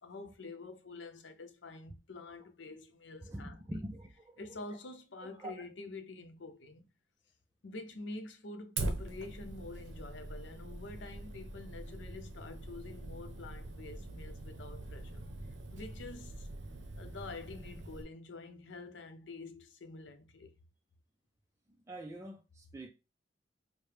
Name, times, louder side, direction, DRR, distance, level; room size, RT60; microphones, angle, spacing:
voice 1, 0.0-3.6 4.4-6.9 7.6-15.3 15.7-16.5 17.0-20.5, left 3 dB, 80° left, 0.6 m, -47 dB
voice 2, 3.2-4.4 5.4-5.5 21.9-22.9, right 1 dB, 15° right, 0.4 m, -44 dB
Fire, 8.8-18.0, right 2 dB, 75° right, 0.6 m, -43 dB
4.7 x 2.1 x 3.2 m
head